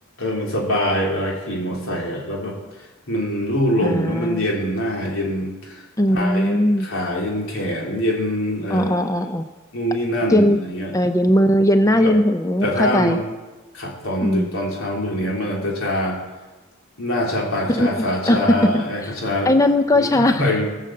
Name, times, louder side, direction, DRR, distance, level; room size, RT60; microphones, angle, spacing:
voice 1, 0.2-2.6 3.1-5.8 6.1-9.3 9.7-10.9 12.0-12.1 12.6-13.2 13.7-16.2 17.0-19.6 19.9-20.6, equal, 75° left, -2 dB, 3.6 m, -24 dB
voice 2, 3.8-4.4 6.0-6.8 8.7-9.4 10.3-10.6 10.9-13.2 14.2-14.5 17.8-18.8 19.5-20.4, left 1 dB, 15° left, 8 dB, 0.5 m, -18 dB
18.5 x 6.6 x 7.6 m, 1.2 s
head